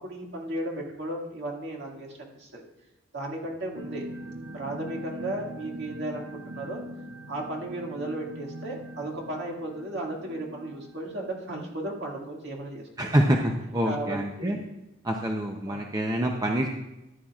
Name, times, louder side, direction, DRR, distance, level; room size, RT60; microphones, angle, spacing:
voice 1, 0.0-2.6 3.1-4.1 4.5-6.3 6.5-6.8 7.3-13.1 13.8-14.6 15.7-15.8, right 1 dB, 50° right, -1 dB, 2.0 m, -35 dB
sound 1, 3.8-12.2, right 1 dB, 70° right, 0.6 m, -42 dB
voice 2, 13.0-14.6 15.0-16.7, right 1 dB, 20° right, 1 dB, 0.6 m, -26 dB
14.5 x 10.0 x 2.4 m, 0.96 s
head